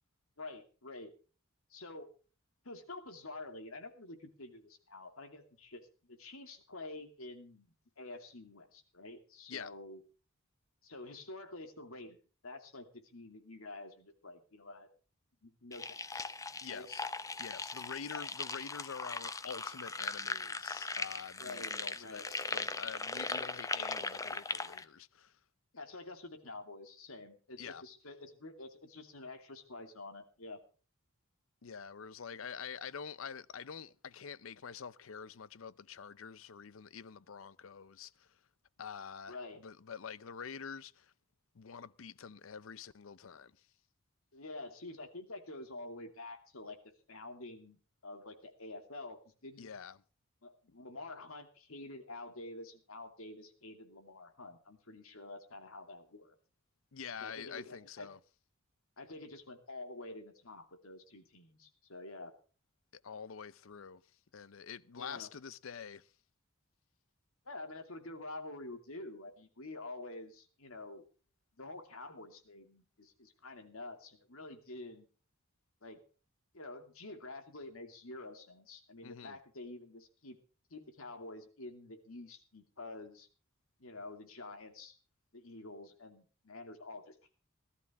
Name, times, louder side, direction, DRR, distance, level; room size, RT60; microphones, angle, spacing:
voice 1, 0.4-1.1 1.7-2.1 2.6-7.7 8.0-10.0 10.8-12.2 12.4-14.9 15.4-16.3 16.7-16.9 18.1-18.3 21.4-22.3 25.7-30.6 39.3-39.6 44.3-46.8 47.1-49.7 50.4-56.3 57.2-58.1 59.0-62.3 64.9-65.3 67.4-71.1 71.6-75.1 75.8-76.0 76.5-80.4 80.7-83.3 83.8-85.0 85.3-87.3, left 2 dB, 85° left, 2.6 m, -48 dB
sound 1, 15.7-24.8, left 3 dB, 15° left, 0.7 m, -39 dB
voice 2, 16.6-17.0 17.4-25.3 27.6-27.8 31.6-38.3 38.8-41.1 41.5-43.5 49.6-50.0 56.9-58.2 62.9-64.0 64.3-66.1 79.0-79.4, left 6 dB, 70° left, 0.6 m, -46 dB
18.0 x 13.0 x 3.6 m
head